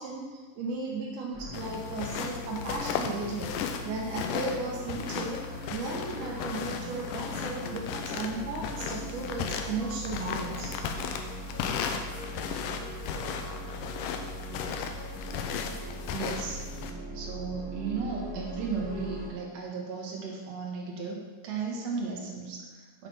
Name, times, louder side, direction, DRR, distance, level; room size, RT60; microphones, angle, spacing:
voice 1, 0.0-3.5 3.8-5.4 5.7-10.8, right 3 dB, 80° right, -1 dB, 2.3 m, -35 dB
Cosmic Glow, 1.3-19.3, equal, ahead, 1.6 m, -40 dB
sound 1, 1.5-16.9, left 7 dB, 85° left, 2.2 m, -36 dB
voice 2, 16.1-16.6 17.1-21.2 21.4-23.1, right 5 dB, 60° right, -2 dB, 2.2 m, -35 dB
7.7 x 3.9 x 5.7 m, 1.4 s
omnidirectional pair, 3.7 m